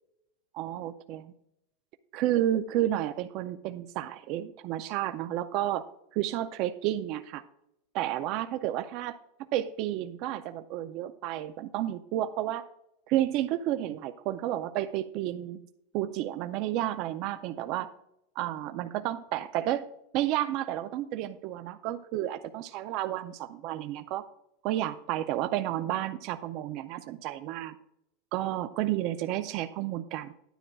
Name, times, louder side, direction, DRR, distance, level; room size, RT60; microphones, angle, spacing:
voice 1, 0.5-1.3 2.1-5.8 6.1-7.4 7.9-9.2 9.5-12.6 13.1-15.6 15.9-17.9 18.4-19.8 20.1-24.2 24.6-27.8 28.3-30.3, right 13 dB, 45° right, 9 dB, 0.4 m, -31 dB
10.0 x 9.3 x 2.3 m, 0.80 s
supercardioid pair, 150°, 0 cm